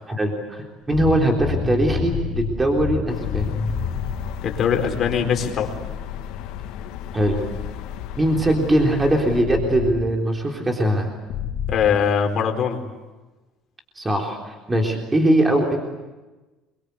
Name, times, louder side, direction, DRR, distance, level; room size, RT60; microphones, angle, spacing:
voice 1, 0.1-3.5 7.1-7.4 8.2-11.1 14.0-15.8, right 1 dB, 15° right, 1 dB, 3.6 m, -21 dB
sound 1, 0.9-4.2 9.5-9.9 11.3-11.8, left 6 dB, 60° left, 4.1 m, -27 dB
sound 2, 3.1-9.4, left 9 dB, 80° left, 2.6 m, -34 dB
voice 2, 4.4-5.7 11.7-12.8, left 7 dB, 40° left, 3 dB, 4.2 m, -21 dB
27.5 x 23.5 x 8.3 m, 1.2 s
cardioid pair, 140°, 0 cm